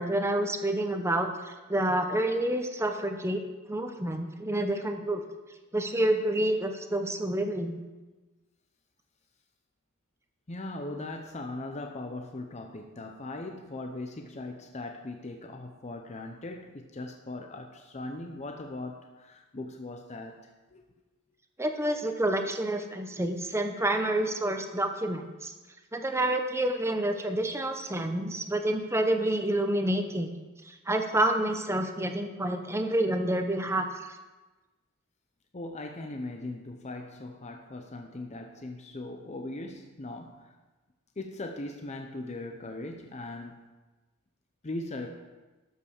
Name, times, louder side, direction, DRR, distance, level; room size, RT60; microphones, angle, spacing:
voice 1, 0.0-3.4 3.7-5.2 5.7-7.8 21.6-25.5 25.9-30.3 30.6-34.2, right 1 dB, 10° right, 5 dB, 0.9 m, -28 dB
voice 2, 10.5-20.8 35.5-40.5 41.2-43.6 44.6-45.1, left 2 dB, 30° left, 4 dB, 0.7 m, -39 dB
12.5 x 5.5 x 6.5 m, 1.2 s
head